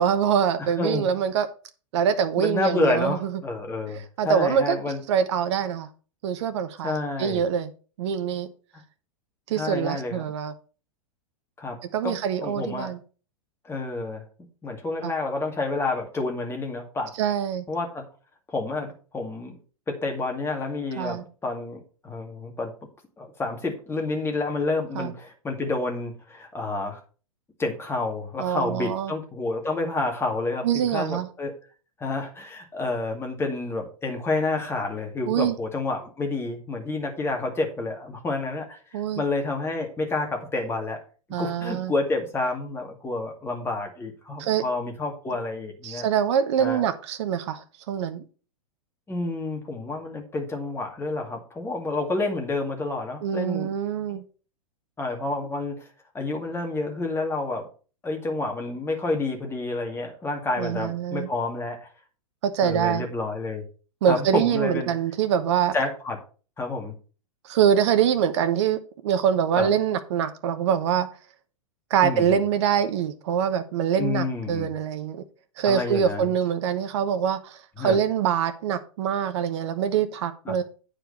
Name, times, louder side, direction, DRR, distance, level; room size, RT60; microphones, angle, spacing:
voice 1, 0.0-1.5 1.9-3.4 4.2-4.8 5.1-5.9 6.2-7.7 8.0-8.5 9.5-10.5 11.9-13.0 15.0-15.1 17.2-17.7 21.0-21.2 24.9-25.1 28.4-29.1 30.6-31.3 35.3-35.6 38.9-39.2 41.3-41.9 44.4-44.6 45.8-48.2 53.2-54.2 60.6-61.3 62.4-63.1 64.0-65.7 67.4-71.1 71.9-75.2 75.6-80.6, right 8 dB, 50° right, 1.1 m, -24 dB
voice 2, 0.6-1.1 2.4-5.0 6.8-7.4 9.5-10.3 11.6-11.8 12.0-12.9 13.6-14.2 14.6-17.1 17.7-18.0 18.5-19.6 19.9-22.7 23.2-27.0 27.6-31.5 32.0-41.0 41.4-46.1 46.6-46.8 49.1-53.8 54.1-54.2 55.0-55.9 56.1-57.7 58.0-61.9 62.6-63.6 64.1-64.9 65.7-66.2 66.6-66.9 69.5-69.7 72.0-72.4 74.0-74.7 75.6-76.3 77.8-78.0 80.5-80.6, left 3 dB, 15° left, 2.3 m, -29 dB
9.0 x 5.1 x 5.5 m
figure-of-eight pair, 100°, 19 cm